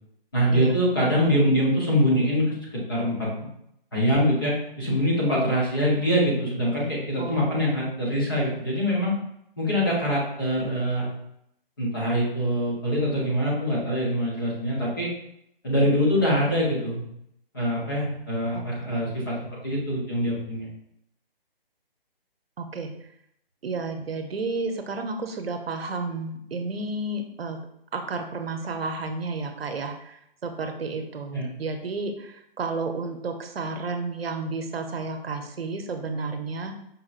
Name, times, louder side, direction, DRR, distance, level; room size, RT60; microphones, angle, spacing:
voice 1, 0.3-3.3 3.9-9.2 9.6-11.1 11.8-15.1 15.6-17.0 17.5-19.3 19.6-20.7 31.3-31.5, equal, 20° left, -6 dB, 0.9 m, -24 dB
voice 2, 7.2-7.7 18.5-19.0 22.6-22.9 23.6-27.6 27.9-36.8, right 3 dB, 80° right, 6 dB, 0.7 m, -32 dB
5.3 x 2.9 x 2.4 m, 0.76 s
hypercardioid pair, 175°, 30 cm